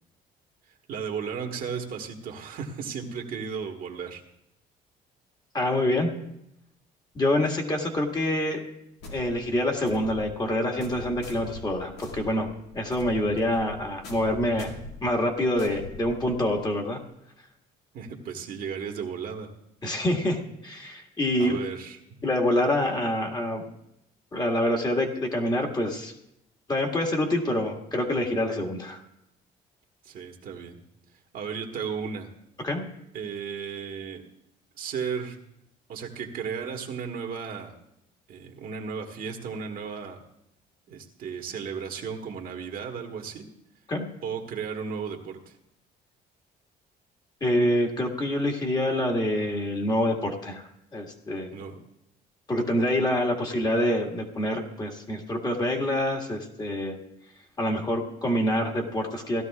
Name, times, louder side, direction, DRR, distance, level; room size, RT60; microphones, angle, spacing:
voice 1, 0.7-4.2 17.9-19.5 21.4-22.2 30.0-30.8 31.3-32.3 33.1-34.2 34.8-35.4 35.9-37.7 38.3-40.2 40.9-43.5 44.2-45.6 51.5-51.8, right 6 dB, 60° right, 2 dB, 1.5 m, -35 dB
voice 2, 5.5-6.1 7.2-8.6 9.1-12.5 12.7-14.7 15.0-17.0 19.8-21.6 22.2-23.6 24.3-26.1 26.7-29.0 32.6-32.8 43.9-44.0 47.4-50.6 50.9-51.5 52.5-57.0 57.6-59.4, left 1 dB, 25° left, 2 dB, 1.8 m, -26 dB
sound 1, 9.0-16.7, left 2 dB, 90° left, 2.2 m, -43 dB
17.0 x 12.5 x 2.4 m, 0.80 s
cardioid pair, 110°, 17 cm